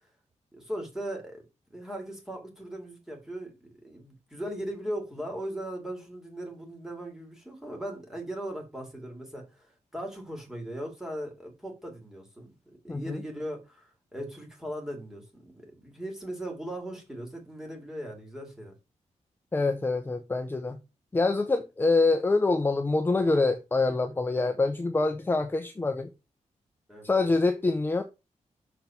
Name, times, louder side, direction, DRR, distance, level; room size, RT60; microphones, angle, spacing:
voice 1, 0.5-1.4 1.7-3.5 3.8-12.5 12.8-18.7 26.9-27.1, right 1 dB, 5° right, 2.6 m, -38 dB
voice 2, 19.5-20.8 21.1-26.1 27.0-28.0, left 3 dB, 15° left, 0.7 m, -25 dB
6.8 x 4.5 x 5.9 m
wide cardioid pair, 175°, 12 cm